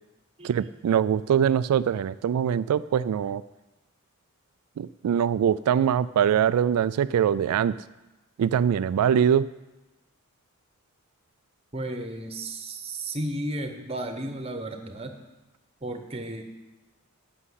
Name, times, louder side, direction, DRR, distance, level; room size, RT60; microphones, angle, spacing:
voice 1, 0.4-3.4 4.8-7.8 8.4-9.5, right 8 dB, 90° right, 15 dB, 0.3 m, -23 dB
voice 2, 11.7-15.1 15.8-16.4, right 1 dB, 25° right, 6 dB, 1.1 m, -33 dB
11.0 x 6.4 x 8.1 m, 1.1 s
head